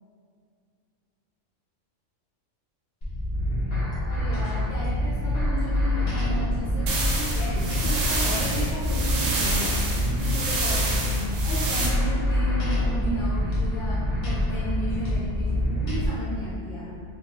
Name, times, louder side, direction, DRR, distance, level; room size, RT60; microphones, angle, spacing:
sound 1, 3.0-16.1, left 1 dB, 45° left, 0.6 m, -26 dB
voice 1, 4.0-9.8 10.1-17.0, equal, 75° left, -7 dB, 0.9 m, -34 dB
sound 2, 6.9-11.9, right 3 dB, 80° right, 1.0 m, -29 dB
2.7 x 2.2 x 2.8 m, 2.3 s
omnidirectional pair, 1.3 m